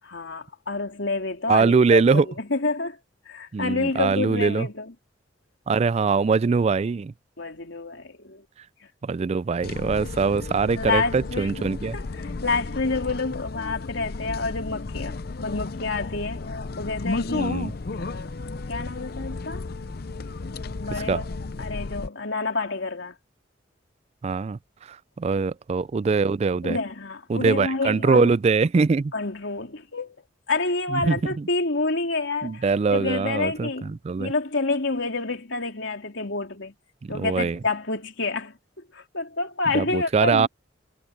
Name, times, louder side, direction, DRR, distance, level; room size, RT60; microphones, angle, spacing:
voice 1, 0.1-3.0 3.2-4.9 7.4-8.4 10.0-10.1 10.7-11.5 11.8-17.6 18.0-19.7 20.4-21.2 21.6-23.1 26.6-28.3 29.1-30.2 30.5-33.9 34.2-36.7 37.1-38.5 38.9-40.5, left 3 dB, 75° left, 3.5 m, -28 dB
voice 2, 1.5-2.3 3.5-4.7 5.7-7.1 9.0-12.0 17.3-17.7 20.9-21.2 24.2-24.6 24.9-26.8 27.3-29.1 30.9-31.5 32.4-34.3 37.0-37.6 39.7-40.5, right 4 dB, 35° right, 0.3 m, -22 dB
sound 1, 9.6-22.1, left 3 dB, 50° left, 0.6 m, -33 dB
head